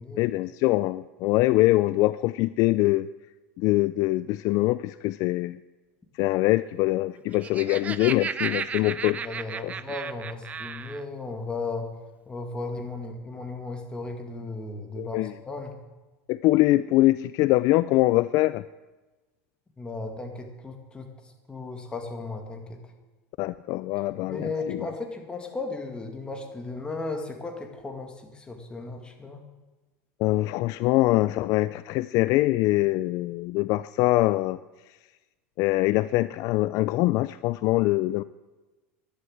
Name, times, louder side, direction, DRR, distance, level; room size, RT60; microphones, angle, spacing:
voice 1, 0.2-3.1 3.6-5.6 6.2-9.2 9.6-9.7 15.0-15.3 16.3-18.6 23.4-24.5 30.2-34.6 35.6-38.2, left 18 dB, 50° left, 16 dB, 0.3 m, -23 dB
Laughter, 7.2-11.0, right 6 dB, 20° right, 0.5 m, -34 dB
voice 2, 8.9-11.9 12.3-15.7 19.8-22.8 24.2-29.4, left 3 dB, 15° left, 4 dB, 2.1 m, -35 dB
11.5 x 11.0 x 8.0 m, 1.2 s
supercardioid pair, 140°, 7 cm